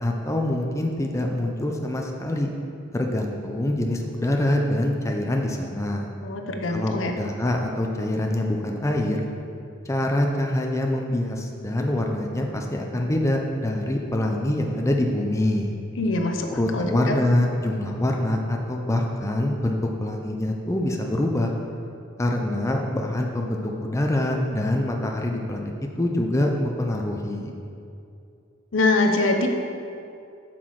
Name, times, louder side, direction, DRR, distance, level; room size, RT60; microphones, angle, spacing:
voice 1, 0.0-2.5 2.9-6.1 6.7-9.3 9.9-15.7 16.5-21.5 22.2-25.7 26.0-27.5, left 1 dB, 15° left, 1 dB, 0.6 m, -25 dB
voice 2, 6.2-7.2 16.0-16.5 16.7-17.2 28.7-29.5, left 2 dB, 75° left, 4 dB, 0.8 m, -23 dB
7.9 x 6.0 x 4.8 m, 2.6 s
head